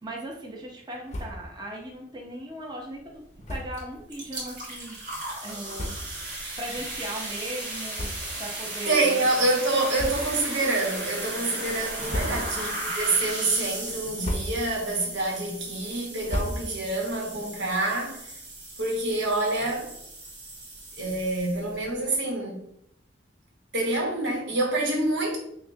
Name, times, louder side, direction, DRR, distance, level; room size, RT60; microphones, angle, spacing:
voice 1, 0.0-3.2 3.5-5.0 5.4-6.2 6.6-9.2 12.2-12.6, right 1 dB, 25° right, -1 dB, 0.6 m, -38 dB
sound 1, 1.1-1.6 1.9-2.0 2.3-2.4 3.4-3.9 4.6-4.7 5.4-5.5 5.7-6.3 6.8-7.0 7.9-8.6 8.9-9.1 9.9-10.5 11.0-11.4 11.9-12.8 13.1-13.6 14.0-14.8 15.2-17.0, left 1 dB, 40° left, 0.6 m, -35 dB
sound 2, 3.7-3.8 4.1-21.8, right 2 dB, 45° right, 1.5 m, -36 dB
voice 2, 8.9-18.2 18.8-19.9 21.0-22.6 23.7-25.4, right 2 dB, 80° right, -1 dB, 1.1 m, -27 dB
5.7 x 2.1 x 2.7 m, 0.76 s
head